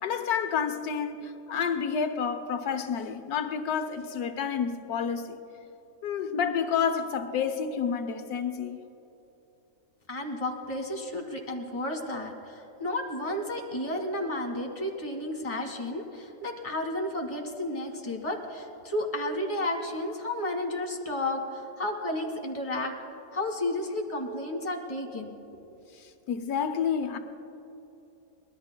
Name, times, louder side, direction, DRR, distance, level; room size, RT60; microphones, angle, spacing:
voice 1, 0.0-5.4 6.0-8.8 25.9-27.2, left 7 dB, 85° left, 1.3 m, -29 dB
voice 2, 10.1-22.9 23.3-25.4, left 1 dB, 20° left, 1.8 m, -32 dB
24.5 x 20.0 x 2.2 m
omnidirectional pair, 1.6 m